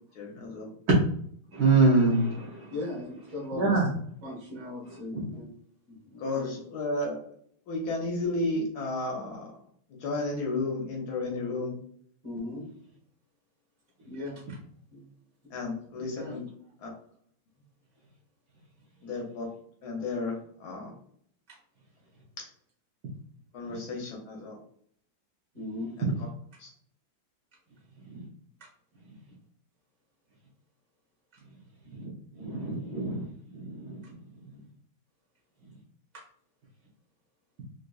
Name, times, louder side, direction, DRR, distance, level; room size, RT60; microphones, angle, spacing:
voice 1, 0.1-0.7 6.2-7.2 7.7-9.5 10.0-11.8 15.5-16.5 16.8-16.9 19.0-19.5 19.8-20.9 22.4-22.5 23.5-24.6 26.0-26.1 26.6-26.7, left 2 dB, 70° left, 0 dB, 1.0 m, -33 dB
voice 2, 1.5-2.6 3.6-3.9 5.1-5.3 28.1-28.2 32.4-33.2 33.6-33.9, right 3 dB, 70° right, -4 dB, 0.9 m, -24 dB
voice 3, 2.7-3.8 4.2-5.5 5.9-6.6 12.2-12.7 14.0-14.4 14.9-15.0 16.0-16.4 21.5-21.6 25.5-25.9 36.1-36.2, left 2 dB, 25° right, -5 dB, 1.1 m, -38 dB
3.7 x 2.6 x 2.3 m, 0.63 s
omnidirectional pair, 2.4 m